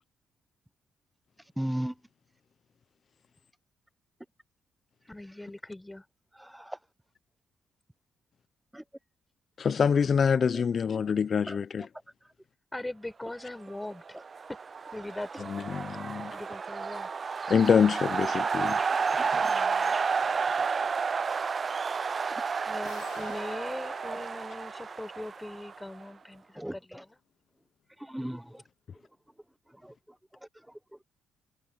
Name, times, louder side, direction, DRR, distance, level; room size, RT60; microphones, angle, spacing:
voice 1, 1.6-1.9 6.5-6.8 8.7-8.8 11.5-11.6 19.2-19.4 26.6-27.0 28.1-28.4, right 1 dB, 5° right, 0.7 m, -34 dB
voice 2, 5.1-6.0 12.7-14.0 14.5-14.6 14.9-15.5 16.3-17.1 19.4-20.0 22.7-27.2, left 1 dB, 15° left, 5.1 m, -40 dB
voice 3, 9.6-11.9 15.5-16.4 17.5-18.8, left 6 dB, 55° left, 0.7 m, -25 dB
sound 1, 14.1-26.0, right 5 dB, 45° right, 0.4 m, -31 dB
sound 2, 16.7-17.0 17.4-17.8 18.2-23.1, right 3 dB, 25° right, 3.3 m, -51 dB
sound 3, 22.9-25.7, left 10 dB, 70° left, 2.1 m, -49 dB
supercardioid pair, 55°, 0 cm